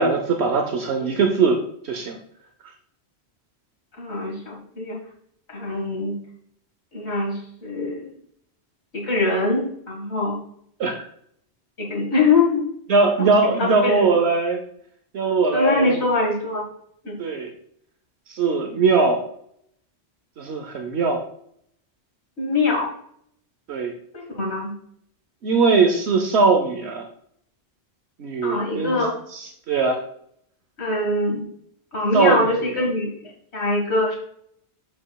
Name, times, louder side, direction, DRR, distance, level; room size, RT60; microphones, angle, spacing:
voice 1, 0.0-2.2 10.8-11.0 12.9-14.6 15.1-16.0 17.2-17.5 18.3-19.2 20.4-21.2 23.7-23.9 25.4-27.0 28.2-29.0 29.3-30.0 32.1-32.7, right 4 dB, 80° right, 4 dB, 1.1 m, -20 dB
voice 2, 4.0-5.0 5.5-6.2 6.9-8.1 8.9-10.4 11.8-12.6 13.2-14.1 15.5-16.6 17.0-17.2 22.4-22.9 24.1-24.7 28.4-29.2 30.8-31.4 31.9-33.2 33.5-34.1, left 3 dB, 80° left, -2 dB, 2.2 m, -23 dB
7.6 x 7.6 x 2.3 m, 0.67 s
omnidirectional pair, 1.1 m